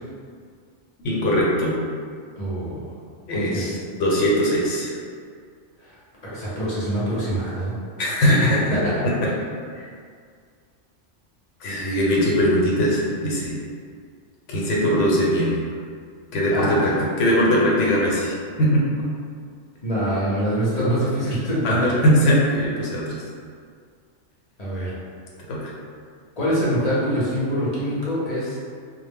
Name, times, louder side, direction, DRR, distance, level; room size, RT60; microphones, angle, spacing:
voice 1, 1.0-1.7 3.3-5.0 8.0-8.6 9.2-9.3 9.7-9.8 11.6-13.6 14.5-15.6 16.3-18.3 18.6-19.0 21.6-23.2 25.5-25.7, equal, 85° left, -4 dB, 0.9 m, -20 dB
voice 2, 2.4-2.9 3.3-3.6 5.8-6.0 6.2-7.7 8.7-8.8 16.5-17.0 19.8-21.8 24.6-25.0 26.4-28.6, equal, 40° left, -8 dB, 0.6 m, -24 dB
2.0 x 2.0 x 3.4 m, 2.1 s
omnidirectional pair, 1.2 m